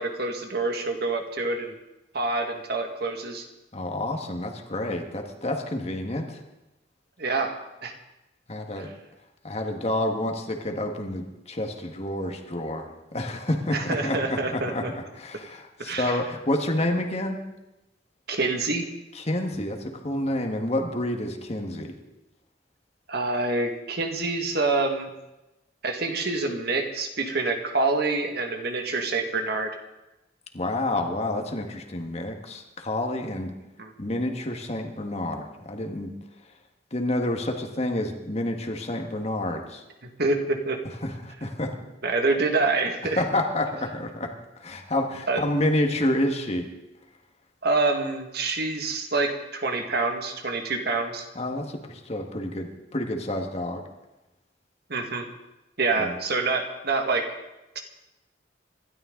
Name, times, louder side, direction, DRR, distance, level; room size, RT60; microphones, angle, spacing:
voice 1, 0.0-1.8 2.1-3.5 7.2-7.5 7.8-8.0 8.8-8.9 13.7-14.9 15.8-16.2 18.3-18.8 23.1-25.1 25.8-29.7 33.8-33.9 40.2-40.8 42.0-43.2 45.3-45.4 47.6-51.3 54.9-55.3 55.8-57.3 57.8-57.9, right 3 dB, 60° right, 4 dB, 1.9 m, -26 dB
voice 2, 3.7-6.4 8.5-8.9 9.4-17.4 19.2-22.0 30.5-33.5 34.0-36.1 36.9-39.8 41.0-41.7 43.2-44.3 44.6-46.7 51.4-53.8 56.0-56.1, left 1 dB, 35° left, 3 dB, 1.7 m, -29 dB
26.0 x 12.5 x 3.9 m, 0.99 s
head